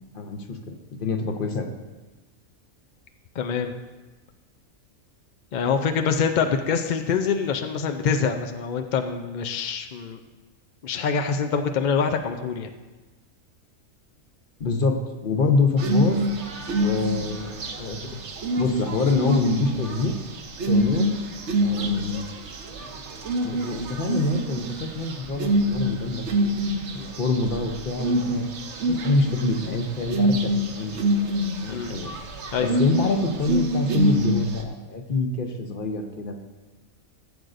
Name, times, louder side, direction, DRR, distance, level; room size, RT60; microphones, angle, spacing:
voice 1, 0.1-1.7 14.6-16.2 16.8-18.2 18.6-20.2 20.7-21.2 21.6-22.2 23.4-26.7 26.9-28.5 28.9-31.0 31.6-32.1 32.6-36.3, left 3 dB, 45° left, 5 dB, 0.9 m, -26 dB
voice 2, 3.3-3.8 5.5-10.2 10.8-12.7 25.8-25.9 31.7-31.9 32.5-32.8, left 6 dB, 70° left, 6 dB, 0.4 m, -25 dB
sound 1, 15.8-34.6, right 1 dB, 60° right, 1.1 m, -26 dB
15.0 x 7.8 x 2.5 m, 1.2 s
omnidirectional pair, 1.4 m